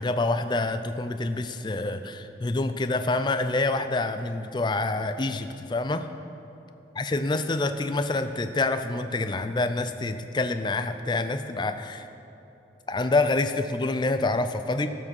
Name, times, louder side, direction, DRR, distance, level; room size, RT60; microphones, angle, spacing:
voice 1, 0.0-6.1 7.0-12.1 12.9-14.9, left 2 dB, 25° left, 9 dB, 0.4 m, -27 dB
13.5 x 6.1 x 6.1 m, 2.9 s
head